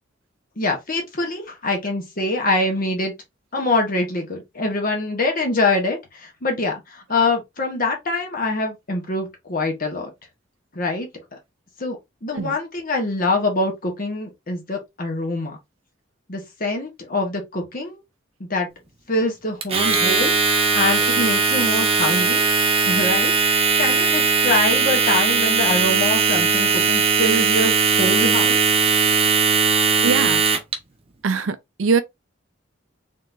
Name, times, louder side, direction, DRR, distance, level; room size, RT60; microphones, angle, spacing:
voice 1, 0.6-3.1 3.5-10.1 10.7-11.1 11.8-15.6 16.3-18.0 18.4-18.7 19.1-22.4 22.9-28.6, left 2 dB, 45° left, 1.3 m, -24 dB
Domestic sounds home sounds, 19.6-30.7, right 5 dB, 30° right, 0.9 m, -19 dB
voice 2, 30.0-30.4 31.2-32.0, right 5 dB, 75° right, 0.5 m, -22 dB
3.8 x 3.7 x 2.6 m
head